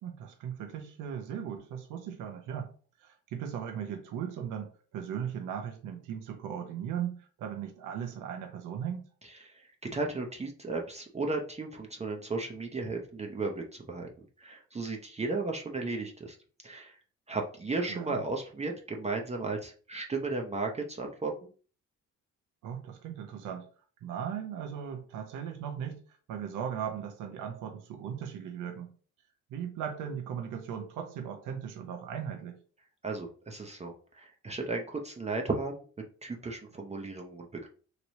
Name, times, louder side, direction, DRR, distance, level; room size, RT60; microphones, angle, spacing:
voice 1, 0.0-2.7 3.0-9.1 17.9-18.2 22.6-23.7 24.0-28.9 29.5-32.6, right 8 dB, 85° right, 4 dB, 0.7 m, -38 dB
voice 2, 9.4-14.1 14.4-16.4 16.6-17.0 17.3-21.5 33.0-35.8 36.2-37.7, right 3 dB, 20° right, 1 dB, 0.6 m, -35 dB
3.0 x 2.9 x 2.7 m, 0.40 s
cardioid pair, 90°, 30 cm